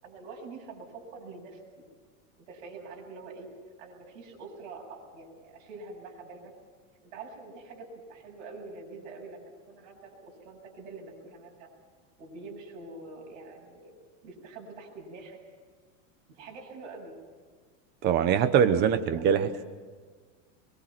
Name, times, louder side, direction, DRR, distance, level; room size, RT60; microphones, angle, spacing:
voice 1, 0.0-1.8 2.4-3.5 3.8-6.5 7.0-11.7 12.2-13.9 14.2-15.4 16.3-17.1, right 3 dB, 55° right, 0 dB, 8.0 m, -45 dB
voice 2, 18.0-19.6, right 8 dB, 25° right, 11 dB, 1.0 m, -23 dB
23.5 x 23.5 x 6.0 m, 1.5 s
supercardioid pair, 170°, 40 cm